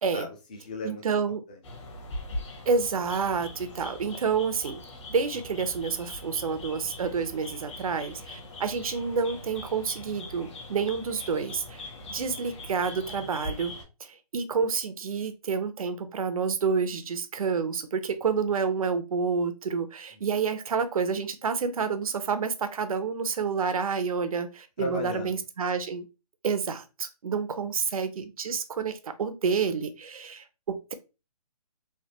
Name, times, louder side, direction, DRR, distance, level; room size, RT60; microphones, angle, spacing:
voice 1, 0.1-1.0 1.5-2.1 20.1-20.2 24.8-25.4, left 2 dB, 15° left, 2 dB, 0.3 m, -37 dB
voice 2, 0.8-1.4 2.7-4.8 5.1-11.8 12.1-13.7 14.0-26.1 26.4-30.9, right 5 dB, 65° right, 11 dB, 0.5 m, -29 dB
sound 1, 1.6-13.8, left 2 dB, 50° left, 0.9 m, -41 dB
3.2 x 2.2 x 2.8 m, 0.29 s
hypercardioid pair, 150°, 20 cm